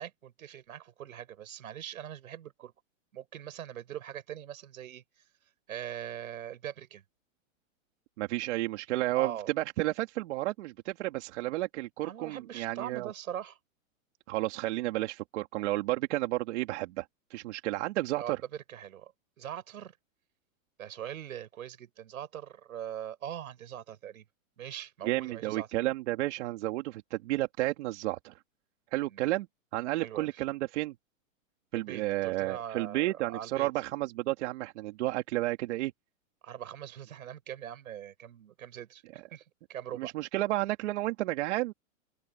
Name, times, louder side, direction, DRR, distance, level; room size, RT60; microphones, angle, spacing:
voice 1, 0.0-2.7 3.1-5.2 5.7-7.0 9.1-9.5 12.0-13.6 18.1-19.1 19.4-19.9 20.8-24.2 24.6-25.7 29.1-29.2 29.9-30.4 31.7-33.7 36.4-39.4 39.7-40.1, right 10 dB, 85° right, 5.9 m, -42 dB
voice 2, 8.2-9.3 9.6-13.1 14.3-17.1 17.3-18.4 25.0-28.3 28.9-29.5 29.7-30.9 31.7-35.9 40.0-41.7, right 18 dB, 55° right, 2.4 m, -31 dB
open air
hypercardioid pair, 145°, 40 cm